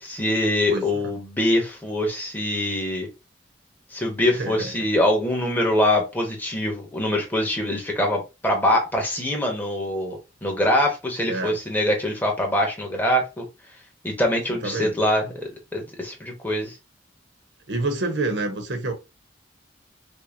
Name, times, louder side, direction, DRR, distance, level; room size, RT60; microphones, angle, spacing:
voice 1, 0.0-3.1 3.9-13.4 14.0-16.7, left 1 dB, 10° left, 1.2 m, -24 dB
voice 2, 0.7-1.1 4.2-4.7 11.3-11.6 14.6-15.0 17.7-18.9, right 2 dB, 70° right, 0.9 m, -28 dB
5.4 x 2.2 x 2.7 m
head